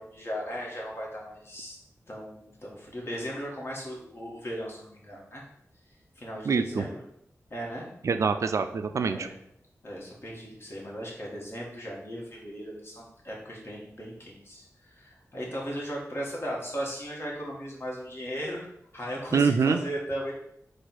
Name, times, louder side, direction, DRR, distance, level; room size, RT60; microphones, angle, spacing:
voice 1, 0.0-1.7 2.1-5.4 6.2-7.0 7.5-7.9 9.0-9.3 9.8-18.7 18.9-20.3, equal, 45° left, -3 dB, 1.6 m, -37 dB
voice 2, 6.5-6.8 8.0-9.3 19.3-19.8, right 5 dB, 65° right, 9 dB, 0.3 m, -25 dB
4.3 x 2.5 x 4.1 m, 0.72 s
cardioid pair, 55°, 6 cm